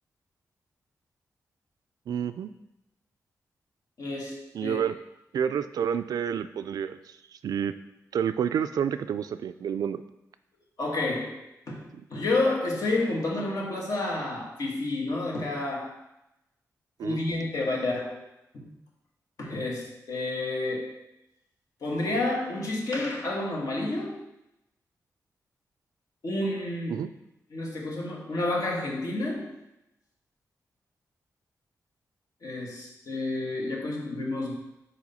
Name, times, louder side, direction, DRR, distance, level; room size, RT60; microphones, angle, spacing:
voice 1, 2.1-2.5 4.5-4.9 5.3-7.0 7.4-7.7 8.1-10.0 17.0-17.2 26.9-27.1, right 8 dB, 85° right, 11 dB, 0.3 m, -29 dB
voice 2, 4.0-4.8 10.8-11.8 12.1-16.0 17.0-18.3 18.5-18.7 19.4-21.0 21.8-24.3 26.2-27.1 27.5-29.6 32.4-34.5, left 2 dB, 65° left, -1 dB, 1.5 m, -30 dB
4.9 x 4.1 x 5.5 m, 0.88 s
wide cardioid pair, 105°, 6 cm